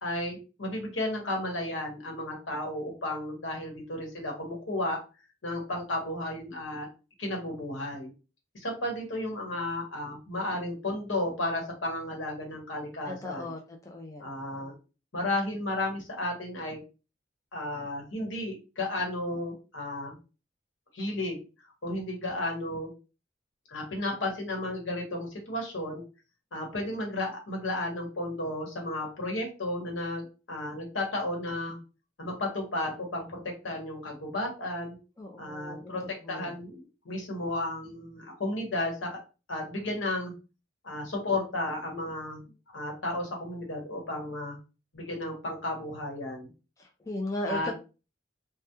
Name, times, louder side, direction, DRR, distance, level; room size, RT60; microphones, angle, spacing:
voice 1, 0.0-5.0 5.4-6.9 7.2-8.1 8.5-13.5 14.2-14.8 15.1-16.8 17.5-20.2 20.9-21.4 21.8-22.9 23.7-26.0 26.5-31.8 32.2-33.4 33.6-35.0 35.4-39.2 39.5-40.3 40.8-42.4 42.7-44.6 44.9-46.5 47.4-47.7, left 1 dB, 85° left, 0 dB, 1.0 m, -33 dB
voice 2, 13.1-14.2 35.2-35.9 36.3-36.5 46.8-47.7, left 1 dB, 15° left, 2 dB, 0.3 m, -36 dB
2.2 x 2.1 x 2.8 m, 0.32 s
head